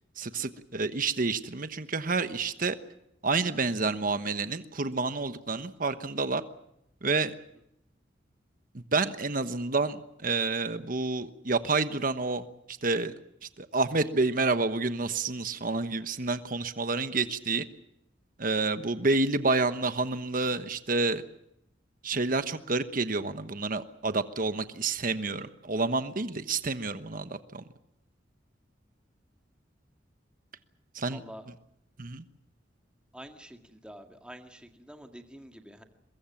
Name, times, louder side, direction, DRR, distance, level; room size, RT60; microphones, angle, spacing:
voice 1, 0.2-2.8 3.2-6.4 7.0-7.3 8.7-13.1 13.4-17.6 18.4-21.2 22.0-27.6 30.9-31.2 32.0-32.2, right 3 dB, 50° right, 11 dB, 1.2 m, -29 dB
voice 2, 31.1-31.5 33.1-35.8, equal, 5° right, 5 dB, 2.0 m, -47 dB
23.0 x 22.5 x 7.3 m, 0.79 s
head